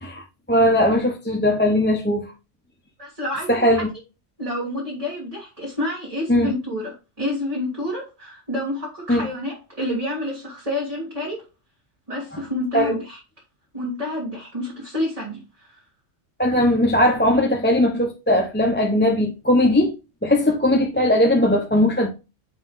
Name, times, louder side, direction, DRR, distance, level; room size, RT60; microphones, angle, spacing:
voice 1, 0.0-2.3 3.5-3.9 6.3-6.5 9.1-9.3 12.7-13.0 16.4-19.9 20.2-22.1, left 1 dB, 10° left, 0.7 m, -19 dB
voice 2, 3.0-3.8 4.4-11.4 12.1-13.2 13.7-15.8, left 1 dB, 30° right, 1.8 m, -29 dB
8.8 x 3.1 x 3.7 m
omnidirectional pair, 1.2 m